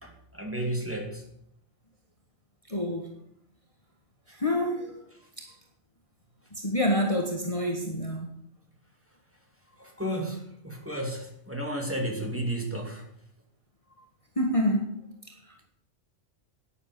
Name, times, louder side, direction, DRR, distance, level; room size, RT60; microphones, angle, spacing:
voice 1, 0.0-1.2 9.8-13.1, right 1 dB, 10° right, 0 dB, 2.7 m, -33 dB
voice 2, 2.7-3.1 4.3-4.9 5.4-5.5 6.5-8.3 14.4-14.9, left 1 dB, 25° left, 1 dB, 1.7 m, -27 dB
11.5 x 10.0 x 6.9 m, 0.72 s
omnidirectional pair, 1.3 m